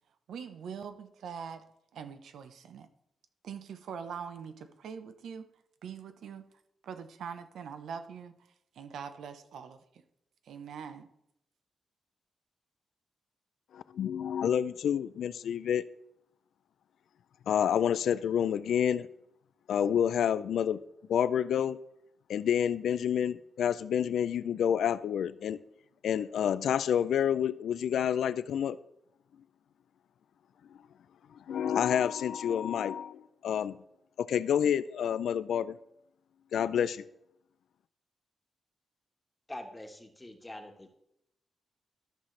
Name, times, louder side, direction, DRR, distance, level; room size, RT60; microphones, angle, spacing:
voice 1, 0.3-1.6 1.9-2.9 3.4-5.5 5.8-6.5 6.8-8.4 8.7-10.0 10.5-11.1, right 7 dB, 90° right, 9 dB, 0.7 m, -43 dB
voice 2, 13.7-15.8 17.5-19.1 19.7-20.8 21.1-21.8 22.3-25.6 26.0-28.8 31.5-33.8 34.2-35.8 36.5-37.0, left 9 dB, 90° left, 16 dB, 0.3 m, -28 dB
voice 3, 39.5-40.9, left 1 dB, 15° left, 4 dB, 1.2 m, -44 dB
13.0 x 5.8 x 3.2 m, 0.79 s
cardioid pair, 110°, 0 cm